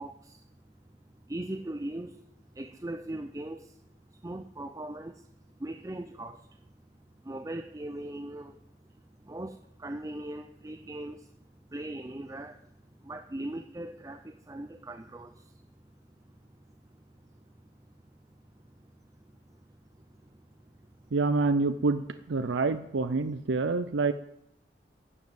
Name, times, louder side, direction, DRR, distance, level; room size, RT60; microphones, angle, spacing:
voice 1, 0.0-21.2, right 1 dB, 15° right, 5 dB, 0.5 m, -42 dB
voice 2, 21.1-22.0 22.3-24.1, right 3 dB, 80° right, 10 dB, 0.5 m, -27 dB
12.0 x 7.3 x 7.8 m, 0.78 s
head